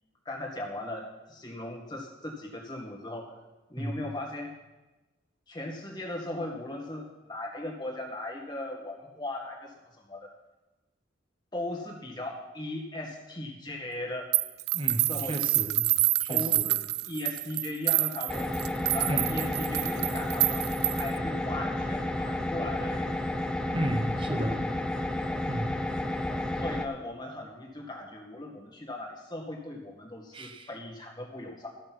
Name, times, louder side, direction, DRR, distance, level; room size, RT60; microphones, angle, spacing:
voice 1, 0.3-3.3 3.7-4.5 5.5-10.3 11.5-14.3 15.1-15.4 16.3-18.5 18.9-23.2 24.7-24.8 26.6-31.7, left 1 dB, 20° left, 0 dB, 2.0 m, -38 dB
sound 1, 14.3-21.2, right 17 dB, 55° right, 0.3 m, -27 dB
voice 2, 14.7-15.9 16.2-16.7 19.0-19.4 23.7-24.6 25.4-25.8 30.3-30.7, right 1 dB, 25° right, 6 dB, 1.1 m, -33 dB
sound 2, 18.3-26.9, left 1 dB, 5° left, 0.5 m, -31 dB
14.5 x 6.6 x 6.1 m, 1.1 s
head